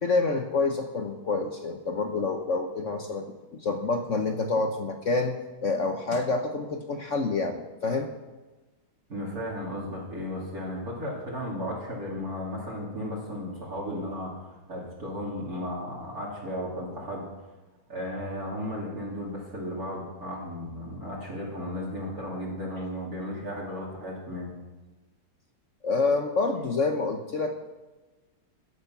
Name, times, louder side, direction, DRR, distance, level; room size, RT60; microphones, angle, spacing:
voice 1, 0.0-3.3 3.5-5.4 5.6-8.1 25.8-27.5, left 3 dB, 55° left, 5 dB, 0.9 m, -27 dB
voice 2, 9.1-17.3 17.9-24.5, left 1 dB, 45° right, -4 dB, 3.1 m, -35 dB
14.0 x 10.5 x 5.9 m, 1.2 s
omnidirectional pair, 2.2 m